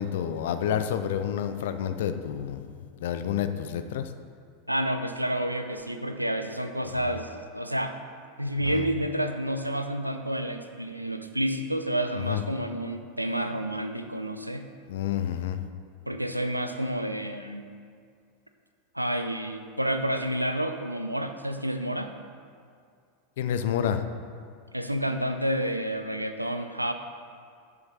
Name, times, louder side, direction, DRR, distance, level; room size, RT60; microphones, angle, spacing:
voice 1, 0.0-2.6 3.0-4.1 8.6-8.8 12.2-12.4 14.9-15.6 23.4-24.0, left 9 dB, 55° left, 9 dB, 0.6 m, -29 dB
voice 2, 4.7-8.0 8.4-14.7 16.1-17.7 18.9-22.1 24.7-26.9, right 1 dB, 90° right, 7 dB, 0.5 m, -29 dB
7.1 x 6.5 x 6.2 m, 2.2 s
figure-of-eight pair, 85°, 0 cm